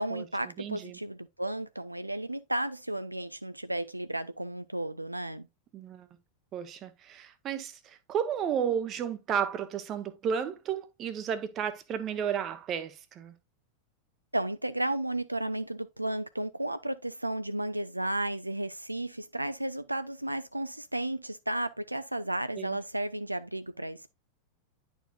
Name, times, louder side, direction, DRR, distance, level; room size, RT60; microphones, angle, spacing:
voice 1, 0.0-5.5 14.3-24.1, right 1 dB, 85° right, 0.3 m, -33 dB
voice 2, 0.6-1.0 5.7-6.1 6.5-13.3 22.6-22.8, right 8 dB, 30° right, 0.8 m, -33 dB
10.0 x 4.5 x 2.3 m
figure-of-eight pair, 90°, 0 cm